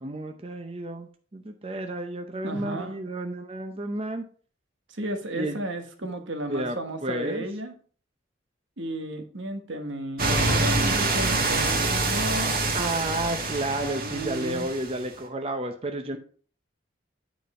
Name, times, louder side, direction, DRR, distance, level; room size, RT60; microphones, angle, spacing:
voice 1, 0.0-4.2 5.3-5.6 6.5-7.4 12.7-16.2, right 1 dB, 30° right, 5 dB, 0.6 m, -31 dB
voice 2, 2.4-2.9 4.9-7.7 8.8-12.5 12.8-12.9 13.8-14.7, right 1 dB, 75° right, 5 dB, 1.4 m, -33 dB
sound 1, 10.2-15.0, right 2 dB, 50° right, 1.9 m, -25 dB
9.2 x 5.2 x 4.3 m, 0.43 s
head